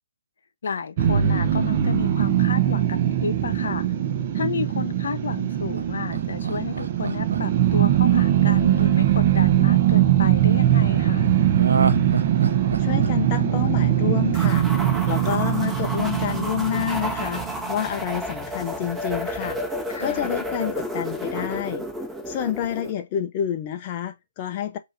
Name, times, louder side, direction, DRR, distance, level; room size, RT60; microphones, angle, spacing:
voice 1, 0.6-3.9 4.3-11.3 19.9-20.3, left 5 dB, 65° left, 0.9 m, -31 dB
sound 1, 1.0-18.2, right 11 dB, 35° right, 0.7 m, -21 dB
Laughter, 5.7-10.0 11.5-14.6 14.9-15.0, right 5 dB, 70° right, 0.7 m, -28 dB
voice 2, 12.8-14.7 15.1-17.4 17.7-19.6 20.0-21.9 22.3-24.8, left 10 dB, 30° left, 0.5 m, -28 dB
sound 2, 14.3-22.9, equal, 10° right, 1.4 m, -31 dB
5.6 x 2.7 x 2.6 m
hypercardioid pair, 150°, 0 cm